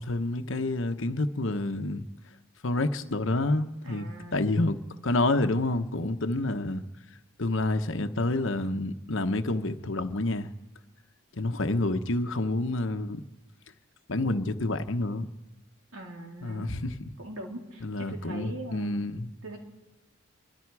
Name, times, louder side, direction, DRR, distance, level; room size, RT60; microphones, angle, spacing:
voice 1, 0.0-2.0 2.6-6.8 7.4-10.5 11.4-13.2 14.1-15.3 16.4-17.1 17.8-19.3, left 2 dB, 65° left, 1.1 m, -28 dB
voice 2, 3.8-4.4 15.9-16.7 17.2-19.0 19.4-19.6, right 1 dB, 90° right, 3.4 m, -41 dB
26.5 x 23.5 x 4.8 m
head